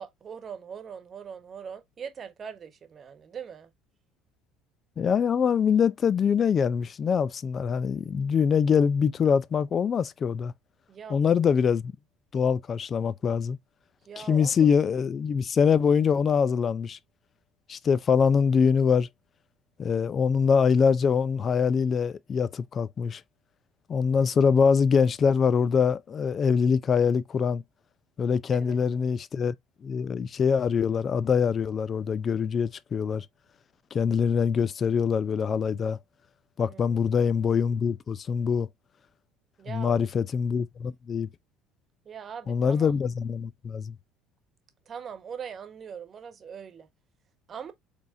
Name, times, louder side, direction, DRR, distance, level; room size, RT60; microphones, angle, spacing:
voice 1, 0.0-3.7 10.9-11.2 14.1-14.6 28.5-28.8 36.6-36.8 39.6-40.0 42.0-42.9 44.9-46.9 47.5-47.7, right 7 dB, 40° right, 1.2 m, -41 dB
voice 2, 5.0-10.5 11.1-11.9 12.3-13.6 14.2-17.0 17.7-19.1 19.8-23.2 23.9-27.6 28.2-29.5 29.8-33.3 33.9-36.0 36.6-38.7 39.7-41.3 42.5-43.9, left 6 dB, 40° left, 0.5 m, -24 dB
5.1 x 3.4 x 2.6 m
hypercardioid pair, 70°, 0 cm